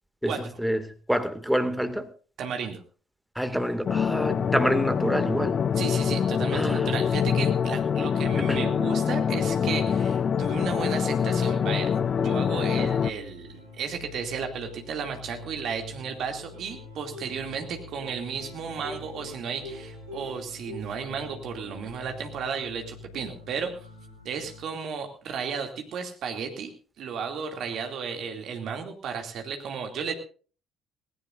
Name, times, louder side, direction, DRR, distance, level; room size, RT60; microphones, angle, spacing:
voice 1, 0.2-2.1 3.4-5.6 6.5-6.9 8.4-8.7, equal, ahead, 2.2 m, -27 dB
voice 2, 2.4-2.8 5.8-23.9 24.2-26.7 27.0-30.1, right 6 dB, 55° right, 2.6 m, -34 dB
sound 1, 3.9-13.1, left 7 dB, 40° left, 0.6 m, -25 dB
sound 2, 10.8-24.6, left 3 dB, 85° left, 4.4 m, -47 dB
Plucked string instrument, 12.9-21.9, equal, 85° right, 8.0 m, -49 dB
19.0 x 18.0 x 2.6 m
figure-of-eight pair, 50°, 0 cm